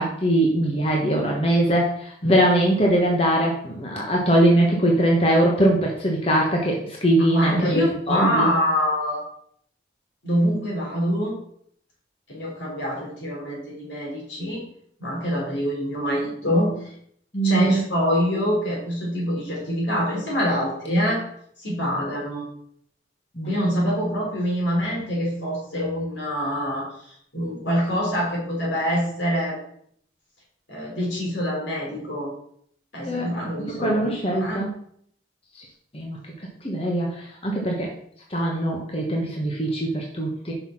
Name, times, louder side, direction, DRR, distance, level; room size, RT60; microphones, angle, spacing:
voice 1, 0.0-8.5 17.3-17.8 23.4-23.5 33.1-33.4 33.7-34.7 35.9-37.9 38.3-40.5, right 1 dB, 30° left, -1 dB, 1.2 m, -22 dB
voice 2, 7.3-9.2 10.2-11.4 12.3-14.6 15.0-16.9 17.4-21.2 21.6-22.5 23.5-29.6 30.7-32.3 32.9-34.6, equal, 80° left, -3 dB, 3.6 m, -25 dB
6.0 x 5.7 x 5.9 m, 0.66 s
head